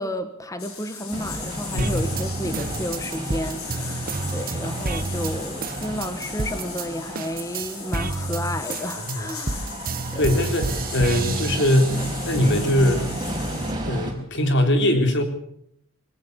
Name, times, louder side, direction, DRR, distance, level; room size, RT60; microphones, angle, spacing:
voice 1, 0.0-9.7 10.1-10.3, left 1 dB, 15° left, 9 dB, 1.3 m, -32 dB
sound 1, 0.6-13.7, left 6 dB, 70° left, 5.1 m, -38 dB
sound 2, 1.1-14.1, right 1 dB, 20° right, 4.8 m, -33 dB
voice 2, 1.7-2.1 9.1-9.3 10.1-13.1 13.9-15.2, left 1 dB, 55° left, 6 dB, 4.0 m, -21 dB
sound 3, 1.8-6.9 7.1-12.3 12.8-13.8, right 3 dB, 40° right, 1.1 m, -30 dB
22.5 x 18.5 x 7.0 m, 0.72 s
head